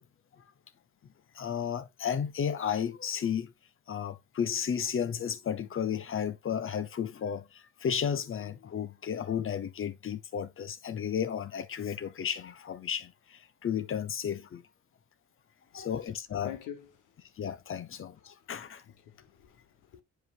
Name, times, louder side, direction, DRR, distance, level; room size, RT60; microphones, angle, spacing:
voice 1, 1.3-3.5 3.9-14.6 15.7-16.5 17.4-18.8, left 8 dB, 45° left, 0.7 m, -33 dB
voice 2, 16.4-17.4 17.9-20.0, left 10 dB, 85° left, 1.3 m, -48 dB
7.9 x 4.9 x 2.4 m
cardioid pair, 90°, 30 cm